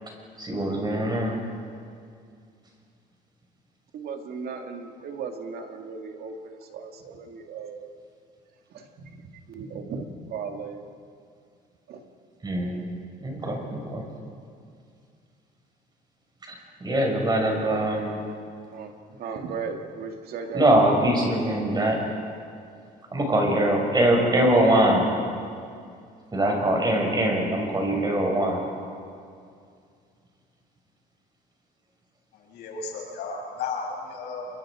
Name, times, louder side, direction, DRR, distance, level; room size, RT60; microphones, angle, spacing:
voice 1, 0.4-1.4 12.4-12.8 13.2-14.0 16.5-18.2 20.5-22.2 23.1-25.3 26.3-28.7, right 1 dB, 25° right, 1 dB, 6.1 m, -23 dB
voice 2, 3.9-7.9 8.7-10.8 11.9-12.0 18.7-20.8, right 5 dB, 65° right, 4 dB, 2.3 m, -36 dB
voice 3, 32.3-34.5, left 4 dB, 85° left, -2 dB, 7.8 m, -34 dB
28.0 x 24.0 x 5.1 m, 2.3 s
cardioid pair, 110°, 17 cm